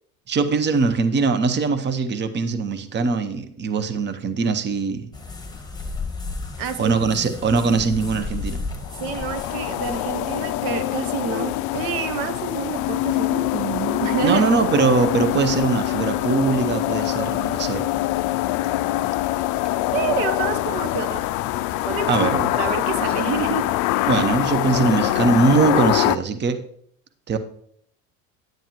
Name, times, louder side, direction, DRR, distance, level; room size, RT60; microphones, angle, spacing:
voice 1, 0.3-5.1 6.8-8.6 14.2-17.9 22.1-22.5 24.1-26.6 27.3-27.4, right 4 dB, 25° right, 10 dB, 0.9 m, -21 dB
sound 1, 5.1-10.6, left 3 dB, 10° left, 1.4 m, -33 dB
voice 2, 6.6-7.0 9.0-14.5 19.9-21.2 21.9-22.3 22.5-23.7, right 7 dB, 60° right, 10 dB, 0.9 m, -28 dB
sound 2, 8.8-26.2, left 16 dB, 50° left, 0.4 m, -24 dB
9.2 x 9.0 x 3.0 m, 0.64 s
hypercardioid pair, 75°, 41 cm